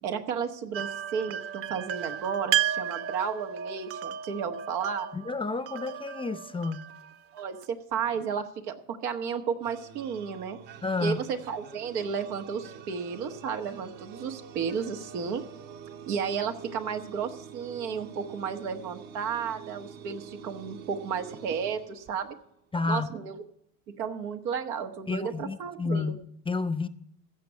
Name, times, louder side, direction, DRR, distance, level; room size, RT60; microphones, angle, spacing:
voice 1, 0.0-5.1 7.3-10.6 11.0-15.4 16.1-22.3 22.9-23.4 24.0-26.2, right 6 dB, 90° right, 1.5 m, -33 dB
sound 1, 0.7-7.7, right 9 dB, 35° right, 0.4 m, -33 dB
voice 2, 5.1-6.9 10.8-11.2 22.7-23.1 25.1-26.9, left 3 dB, 10° left, 0.6 m, -30 dB
sound 2, 9.6-22.6, right 7 dB, 70° right, 2.2 m, -47 dB
15.5 x 6.1 x 8.2 m
supercardioid pair, 95°, 45 cm